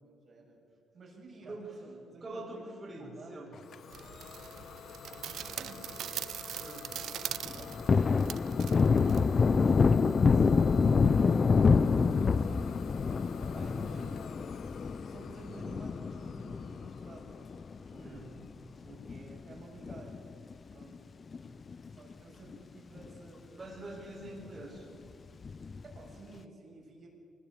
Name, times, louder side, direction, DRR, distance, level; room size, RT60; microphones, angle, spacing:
voice 1, 0.0-0.6 0.9-3.5 5.2-6.1 7.5-8.7 9.3-11.0 11.8-12.8 13.0-14.3 15.0-18.2 19.1-20.2 20.7-21.0 21.9-23.7 25.8-27.1, right 3 dB, 50° right, -1 dB, 7.3 m, -53 dB
voice 2, 2.2-3.5 6.6-6.9 18.0-18.3 18.8-19.0 21.5-21.6 23.6-24.9, right 2 dB, 30° right, -4 dB, 6.3 m, -45 dB
Idling / Domestic sounds home sounds, 3.5-19.1, left 7 dB, 60° left, 1.3 m, -49 dB
sound 1, 3.9-9.9, right 10 dB, 70° right, 0.6 m, -42 dB
Thunder, 7.5-18.2 18.6-18.7 19.0-20.5 20.8-21.0 21.3-22.1 22.5-22.6 23.0-23.1 25.4-26.0, left 5 dB, 40° left, 0.5 m, -27 dB
24.0 x 19.5 x 8.2 m, 2.5 s
cardioid pair, 90°, 0 cm